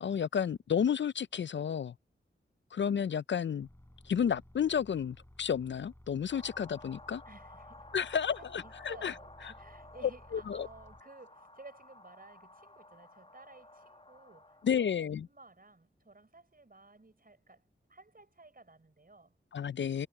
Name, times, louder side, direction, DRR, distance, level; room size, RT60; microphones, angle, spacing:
voice 1, 0.0-1.9 2.7-3.7 4.1-7.2 7.9-9.1 10.3-10.7 14.6-15.2 19.5-20.1, left 8 dB, 65° left, 0.4 m, -31 dB
sound 1, 3.6-11.0, left 1 dB, 10° left, 6.1 m, -57 dB
sound 2, 6.3-15.0, left 2 dB, 30° left, 1.8 m, -54 dB
voice 2, 7.2-19.4, right 3 dB, 45° right, 6.0 m, -56 dB
cardioid pair, 50°, 21 cm